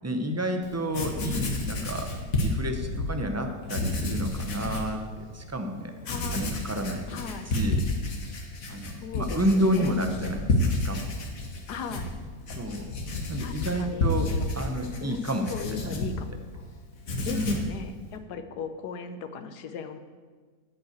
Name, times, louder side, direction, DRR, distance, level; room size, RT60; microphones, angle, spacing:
voice 1, 0.0-5.9 6.3-7.2 7.5-7.8 8.7-11.1 12.6-12.9 13.3-15.5 15.8-16.0 17.3-17.6, equal, 20° right, 5 dB, 0.4 m, -30 dB
Writing, 0.6-0.7 0.9-3.1 3.6-4.9 5.4-5.5 6.0-16.6 16.9-17.7, left 2 dB, 60° left, 1.6 m, -30 dB
voice 2, 6.1-6.5 7.1-7.5 9.0-10.0 11.7-12.1 13.4-14.1 15.0-15.2 15.5-16.3 17.2-20.0, left 6 dB, 85° left, 9 dB, 1.4 m, -37 dB
10.5 x 5.6 x 8.1 m, 1.5 s
omnidirectional pair, 1.7 m